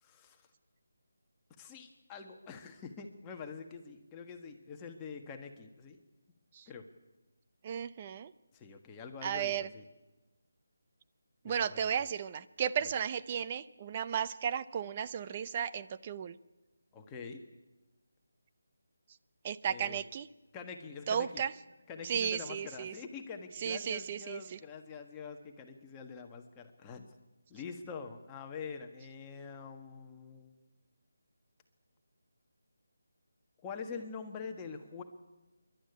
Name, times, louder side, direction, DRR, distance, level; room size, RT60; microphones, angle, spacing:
voice 1, 0.0-0.4 1.6-6.0 6.7-6.9 8.5-9.9 11.4-11.9 16.9-17.4 19.6-20.0 20.5-21.4 21.9-27.1 27.5-30.5 33.6-35.0, left 5 dB, 15° left, 3 dB, 1.5 m, -45 dB
voice 2, 7.6-8.3 9.2-9.7 11.4-16.3 19.4-20.3 21.1-21.5 22.1-22.9 23.6-24.4, right 8 dB, 25° right, 13 dB, 0.6 m, -34 dB
26.5 x 12.0 x 9.5 m, 1.1 s
figure-of-eight pair, 165°, 0 cm